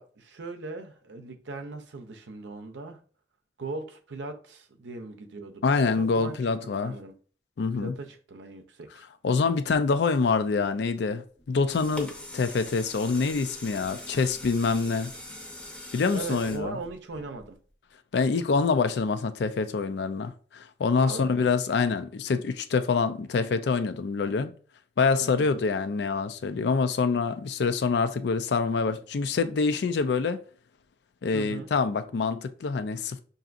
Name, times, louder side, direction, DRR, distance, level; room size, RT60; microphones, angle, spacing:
voice 1, 0.0-3.0 3.6-6.4 6.6-7.1 7.8-9.0 16.1-17.6 21.0-21.5 25.2-25.5 31.3-31.7, right 3 dB, 85° right, 0.6 m, -39 dB
voice 2, 5.6-6.9 7.6-7.9 9.2-15.1 15.9-16.8 18.1-24.5 25.0-30.4 31.2-33.2, left 4 dB, 65° left, 0.4 m, -26 dB
sound 1, 11.4-17.7 18.2-18.3, left 2 dB, 5° left, 0.6 m, -42 dB
5.7 x 2.7 x 2.5 m
head